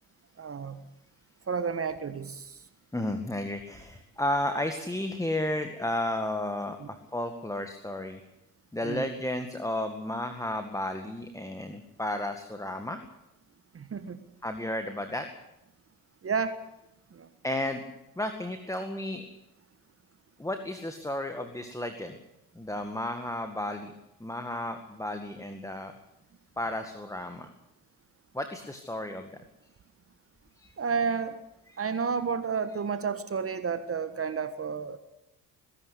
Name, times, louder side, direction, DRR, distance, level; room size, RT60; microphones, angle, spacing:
voice 1, 0.4-0.9 1.5-2.6 6.8-6.9 8.8-9.1 13.7-14.2 16.2-16.6 17.1-17.3 30.8-31.4 31.8-35.0, right 5 dB, 30° right, 12 dB, 1.5 m, -31 dB
voice 2, 2.9-8.2 8.7-13.0 14.4-15.3 17.4-17.8 18.2-19.2 20.4-22.2 22.6-23.9 24.2-25.9 26.6-27.5 28.3-29.4 30.6-30.7 31.7-31.8, left 1 dB, 5° left, 6 dB, 2.0 m, -33 dB
20.0 x 17.0 x 8.4 m, 0.87 s
figure-of-eight pair, 55°, 45 cm